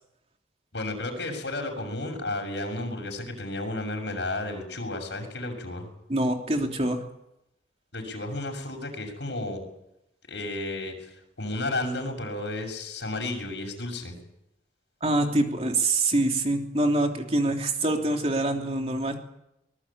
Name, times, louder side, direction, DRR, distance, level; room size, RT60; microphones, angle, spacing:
voice 1, 0.7-5.9 7.9-9.6 10.3-10.9 11.4-14.1, left 2 dB, 90° left, 3 dB, 6.8 m, -32 dB
voice 2, 6.1-7.0 15.0-19.2, right 2 dB, 35° right, 3 dB, 3.1 m, -25 dB
24.0 x 20.0 x 8.7 m, 0.85 s
head